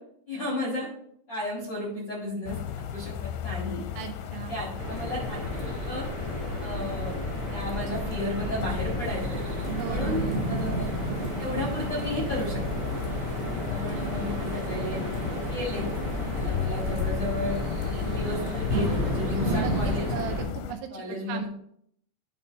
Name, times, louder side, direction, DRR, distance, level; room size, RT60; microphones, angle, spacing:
voice 1, 0.3-0.9 1.3-2.6 2.9-3.8 4.5-6.0 6.6-7.2 7.5-9.4 9.8-11.0 11.4-12.6 13.7-15.0 15.5-15.9 16.3-17.6 17.9-20.0 20.9-21.5, left 1 dB, 55° left, -4 dB, 1.2 m, -33 dB
sound 1, 2.5-20.7, left 8 dB, 85° left, 2.8 m, -35 dB
voice 2, 4.0-4.6 9.8-10.4 19.4-21.5, right 9 dB, 80° right, 6 dB, 2.6 m, -36 dB
sound 2, 4.8-20.4, equal, 55° right, 1.1 m, -33 dB
Thunderstorm / Rain, 9.0-20.2, right 1 dB, 20° right, 1.2 m, -34 dB
10.5 x 3.9 x 4.4 m, 0.68 s
omnidirectional pair, 5.1 m